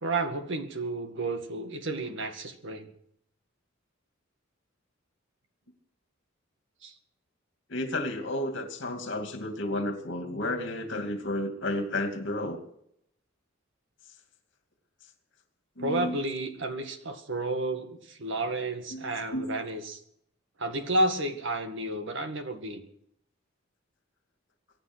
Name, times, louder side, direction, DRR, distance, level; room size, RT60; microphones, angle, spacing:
voice 1, 0.0-2.9 6.8-6.9 15.8-20.0 20.6-22.8, right 2 dB, 65° right, 7 dB, 1.9 m, -31 dB
voice 2, 7.7-12.6 15.8-16.2 18.9-19.0 19.3-19.5, left 1 dB, 65° left, 5 dB, 2.6 m, -32 dB
24.0 x 9.1 x 6.2 m, 0.72 s
head